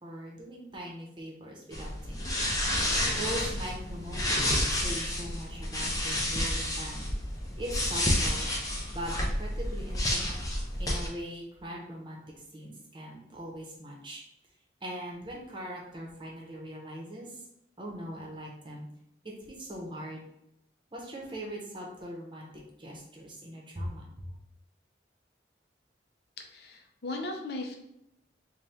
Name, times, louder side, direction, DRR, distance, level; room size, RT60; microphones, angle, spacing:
voice 1, 0.0-2.5 3.2-4.4 4.8-7.0 7.6-8.5 8.9-10.4 10.8-12.2 12.5-14.2 14.8-17.4 17.8-18.9 19.2-20.2 20.9-22.5 22.8-24.3, equal, 25° right, -2 dB, 0.8 m, -41 dB
sound 1, 1.7-11.1, left 1 dB, 20° left, 0.6 m, -30 dB
voice 2, 26.4-27.8, left 2 dB, 60° left, 2 dB, 0.5 m, -37 dB
4.2 x 2.2 x 3.4 m, 0.80 s
head